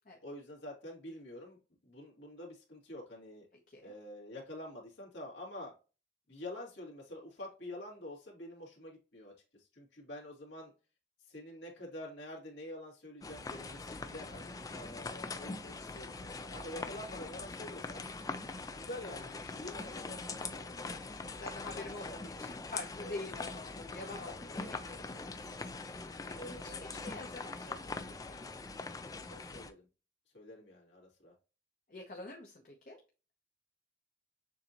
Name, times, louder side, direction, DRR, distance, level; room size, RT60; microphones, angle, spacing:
voice 1, 0.2-3.5 3.8-5.7 6.3-10.7 11.3-18.0 18.7-21.1 21.3-21.5 21.7-22.5 23.0-23.3 24.1-24.8 26.3-26.8 29.3-29.9 30.3-31.3, left 1 dB, 75° left, -2 dB, 2.2 m, -47 dB
sound 1, 13.2-29.7, left 3 dB, 20° left, 0.3 m, -43 dB
voice 2, 14.7-15.1 18.3-18.6 21.4-26.7 27.0-28.4 31.9-33.0, left 2 dB, 45° left, 0 dB, 0.7 m, -47 dB
6.9 x 2.7 x 2.9 m, 0.33 s
head